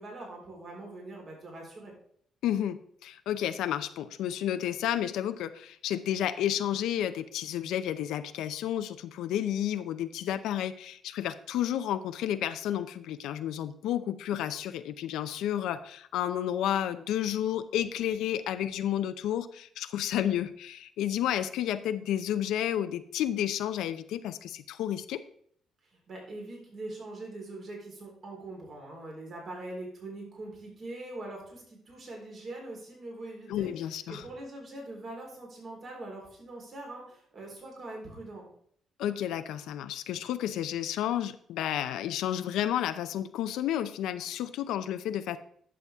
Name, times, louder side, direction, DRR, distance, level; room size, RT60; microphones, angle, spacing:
voice 1, 0.0-1.9 25.9-38.5, right 2 dB, 55° right, -1 dB, 3.9 m, -43 dB
voice 2, 2.4-25.2 33.5-34.2 39.0-45.4, left 11 dB, 90° left, 10 dB, 0.5 m, -31 dB
11.0 x 7.1 x 3.5 m, 0.63 s
cardioid pair, 90°, 0 cm